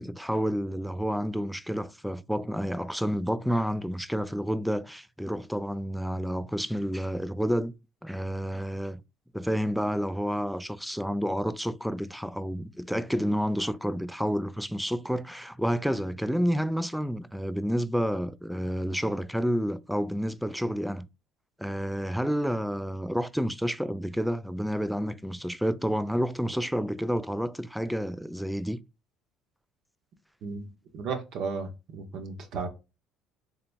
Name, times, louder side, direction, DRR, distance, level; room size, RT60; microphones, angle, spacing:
voice 1, 0.0-7.7 8.0-9.0 9.3-21.1 21.6-28.8, equal, ahead, 0.3 m, -29 dB
voice 2, 30.4-32.7, right 4 dB, 65° right, 1.1 m, -35 dB
3.9 x 3.4 x 2.5 m
supercardioid pair, 90°, 0 cm